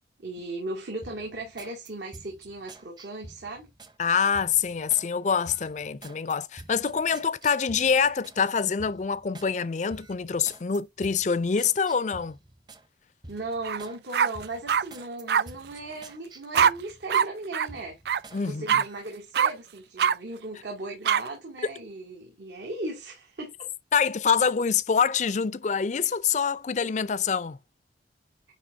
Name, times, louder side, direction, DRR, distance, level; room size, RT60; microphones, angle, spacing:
voice 1, 0.2-3.7 13.3-18.0 18.4-23.7, right 2 dB, 75° right, 2.2 m, -37 dB
sound 1, 1.0-4.0 4.3-5.1 5.4-8.4 8.8-9.5 9.9-12.9 13.2-14.0 14.3-17.3 17.7-18.4 18.8-19.0, right 2 dB, 25° right, 0.8 m, -48 dB
voice 2, 4.0-12.4 18.3-18.8 23.9-27.6, left 6 dB, 40° left, 0.4 m, -25 dB
sound 2, 13.6-13.8 14.1-14.8 15.3-15.4 16.5-16.7 17.1-17.3 17.5-17.7 18.0-18.2 18.7-18.8 19.3-19.5 20.0-20.1 21.0-21.2, right 8 dB, 60° right, 0.3 m, -22 dB
9.6 x 3.4 x 3.6 m
head